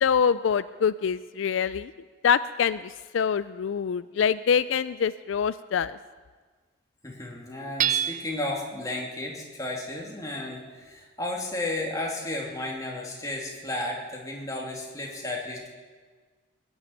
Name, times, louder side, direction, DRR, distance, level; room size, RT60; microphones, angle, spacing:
voice 1, 0.0-1.9 2.2-6.0, left 7 dB, 75° left, 15 dB, 0.4 m, -25 dB
voice 2, 7.0-15.7, left 1 dB, 20° left, -2 dB, 2.9 m, -33 dB
Hammer / Chink clink, 7.8-8.6, right 9 dB, 40° right, 0.5 m, -27 dB
20.5 x 7.2 x 9.8 m, 1.5 s
head